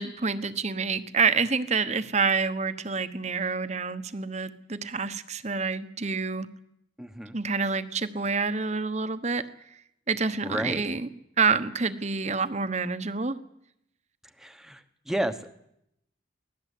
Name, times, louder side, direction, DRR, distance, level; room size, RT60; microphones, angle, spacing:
voice 1, 0.0-6.5 7.3-9.4 10.1-11.1 11.4-13.4, right 5 dB, 35° right, 11 dB, 1.1 m, -27 dB
voice 2, 7.0-7.4 10.4-10.8 14.4-15.5, right 1 dB, ahead, 8 dB, 1.2 m, -32 dB
23.5 x 18.0 x 8.5 m, 0.78 s
head